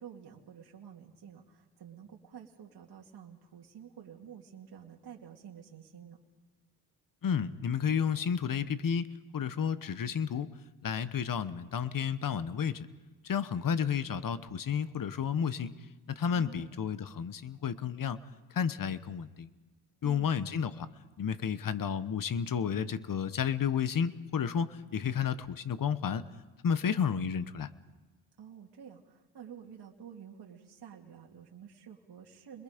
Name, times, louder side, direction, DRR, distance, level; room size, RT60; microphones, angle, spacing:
voice 1, 0.0-6.2 16.3-16.7 20.0-20.3 28.4-32.6, right 8 dB, 65° right, -1 dB, 2.5 m, -50 dB
voice 2, 7.2-9.1 9.3-10.5 10.8-12.9 13.2-15.7 16.1-18.2 18.5-19.5 20.0-20.9 21.2-26.2 26.6-27.7, left 7 dB, 50° left, 13 dB, 1.2 m, -31 dB
30.0 x 22.0 x 5.2 m, 1.2 s
cardioid pair, 75°, 41 cm